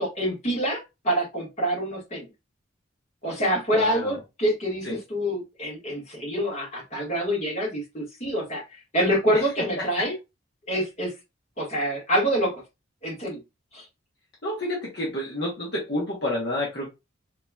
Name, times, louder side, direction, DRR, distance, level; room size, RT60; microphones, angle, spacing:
voice 1, 0.0-2.3 3.2-8.6 8.9-10.1 10.7-11.1 11.6-12.6 13.0-13.4 13.7-13.8, equal, 35° left, 1.6 m, -26 dB
voice 2, 3.7-4.2 4.8-4.9 9.3-9.4 9.8-10.1 14.4-16.9, left 1 dB, 55° left, 1.1 m, -29 dB
4.2 x 2.9 x 2.3 m
head